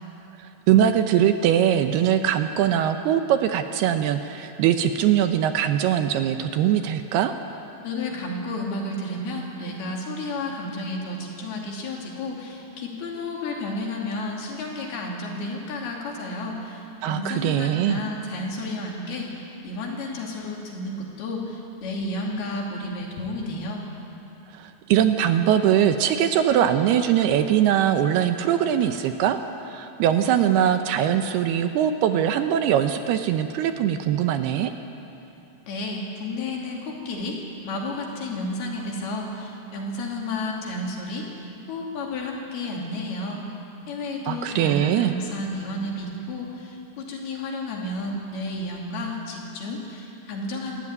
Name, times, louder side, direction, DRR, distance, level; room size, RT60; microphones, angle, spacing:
voice 1, 0.4-7.3 17.0-18.0 24.5-29.4 29.6-34.7 44.3-45.1, right 10 dB, 75° right, 8 dB, 2.6 m, -21 dB
voice 2, 7.8-23.9 35.7-37.4 37.6-43.5 43.9-50.8, left 2 dB, 65° left, -1 dB, 4.7 m, -32 dB
27.5 x 13.5 x 9.6 m, 2.9 s
omnidirectional pair, 5.0 m